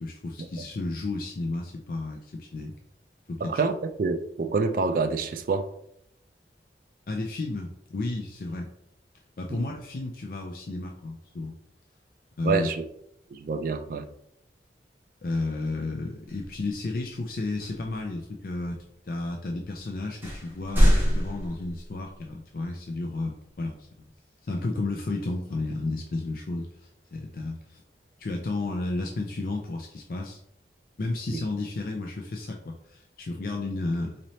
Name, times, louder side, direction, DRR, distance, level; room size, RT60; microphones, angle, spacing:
voice 1, 0.0-2.8 3.3-3.6 7.1-8.7 9.4-11.6 12.4-12.7 15.2-18.8 19.0-24.1 24.4-27.8 28.2-30.4 31.0-34.2, left 2 dB, 50° left, 1 dB, 0.4 m, -32 dB
voice 2, 3.4-5.7 9.5-9.7 12.4-12.9 13.3-14.1 31.3-31.4, right 4 dB, 50° right, 8 dB, 0.3 m, -27 dB
sound 1, 16.3-16.6 17.6-18.0 18.7-18.8 19.6-19.7 20.2-22.1, equal, 15° right, 1.0 m, -24 dB
4.0 x 3.1 x 2.7 m, 0.74 s
head